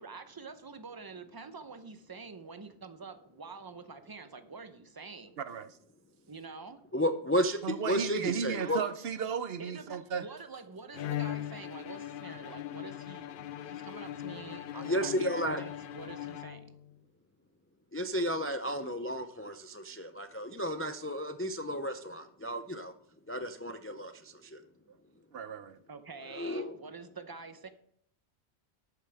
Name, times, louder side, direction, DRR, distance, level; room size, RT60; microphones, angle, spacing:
voice 1, 0.0-5.4 6.3-6.8 8.6-8.9 9.6-13.3 13.6-16.7 25.9-27.7, right 4 dB, 25° right, 0.7 m, -46 dB
voice 2, 5.4-5.7 7.6-10.2 25.3-25.8, right 7 dB, 70° right, 0.9 m, -35 dB
voice 3, 6.9-8.8 14.7-15.6 17.9-22.9 23.3-24.6 26.3-26.7, equal, 20° left, 0.3 m, -33 dB
Bowed string instrument, 10.9-17.0, left 12 dB, 60° left, 0.7 m, -40 dB
13.0 x 8.8 x 3.4 m
omnidirectional pair, 1.1 m